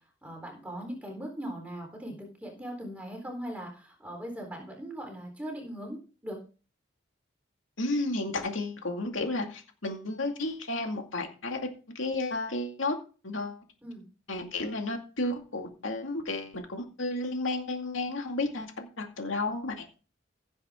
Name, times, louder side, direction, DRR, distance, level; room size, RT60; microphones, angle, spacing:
voice 1, 0.2-6.4 13.8-14.0, equal, 5° right, 1 dB, 3.9 m, -39 dB
voice 2, 7.8-11.7 11.9-13.0 13.2-13.6 14.3-19.9, left 2 dB, 80° left, 3 dB, 2.3 m, -32 dB
16.0 x 7.9 x 3.7 m, 0.36 s
head